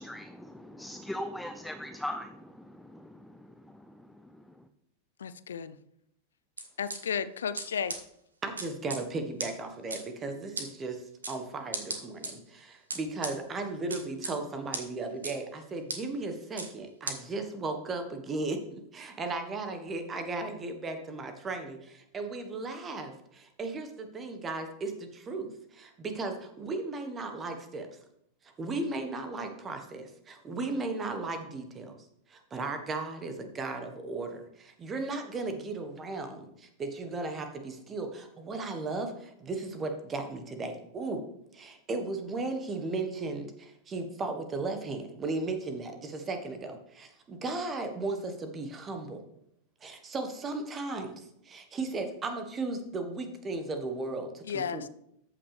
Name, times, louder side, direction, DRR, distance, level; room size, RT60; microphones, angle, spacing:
voice 1, 0.0-4.7, left 1 dB, 5° left, 10 dB, 0.5 m, -41 dB
voice 2, 5.2-5.8 6.8-7.9 54.5-54.9, left 7 dB, 65° left, 14 dB, 0.4 m, -33 dB
sound 1, 6.6-7.0 7.6-7.7 7.9-8.0 8.6-9.0 9.4-9.5 9.9-10.0 10.6-10.7 11.2-11.4 11.7-12.3 12.9-13.3 13.9-14.3 14.7-14.8 15.2-15.3 15.9-16.0 16.6-16.7 17.1-17.2, right 3 dB, 75° right, 1.3 m, -34 dB
voice 3, 8.4-27.9 28.4-31.9 32.3-41.2 41.5-49.3 49.8-54.9, right 3 dB, 20° right, 7 dB, 1.4 m, -36 dB
14.0 x 5.7 x 3.4 m, 0.76 s
figure-of-eight pair, 90°, 0 cm